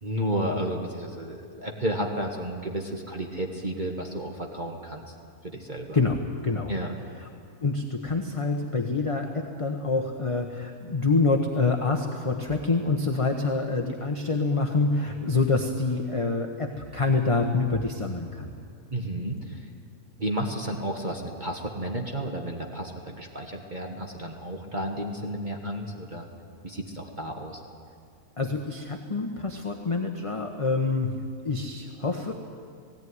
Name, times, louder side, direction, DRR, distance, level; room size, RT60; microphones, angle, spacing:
voice 1, 0.0-5.1 5.4-6.0 6.7-6.9 18.9-19.7 20.2-26.3 26.6-27.6, right 1 dB, 30° right, 1 dB, 1.6 m, -32 dB
voice 2, 5.9-6.7 7.6-18.5 28.4-31.1 31.4-32.3, left 3 dB, 25° left, 3 dB, 1.0 m, -26 dB
18.0 x 17.5 x 9.6 m, 2.3 s
omnidirectional pair, 1.6 m